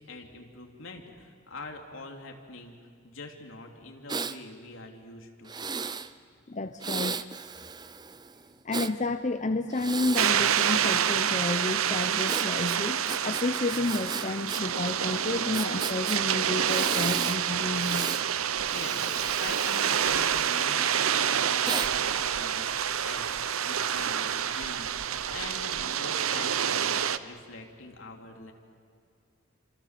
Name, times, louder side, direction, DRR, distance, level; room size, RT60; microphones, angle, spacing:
voice 1, 0.0-2.8 3.0-5.6 18.7-28.5, left 2 dB, 70° left, 2 dB, 3.2 m, -44 dB
Breathing, 4.1-4.4 5.5-6.1 6.8-8.9 9.7-11.3 12.3-14.6 14.9-15.0 15.5-16.2 16.7-17.4 17.7-18.2 18.7-20.9 21.6-21.9, right 5 dB, 20° right, 0.6 m, -35 dB
voice 2, 6.5-7.2 8.6-18.1, left 2 dB, 35° left, 8 dB, 0.7 m, -31 dB
sound 1, 10.2-27.2, right 8 dB, 85° right, 0.8 m, -28 dB
29.5 x 26.5 x 7.6 m, 2.3 s
head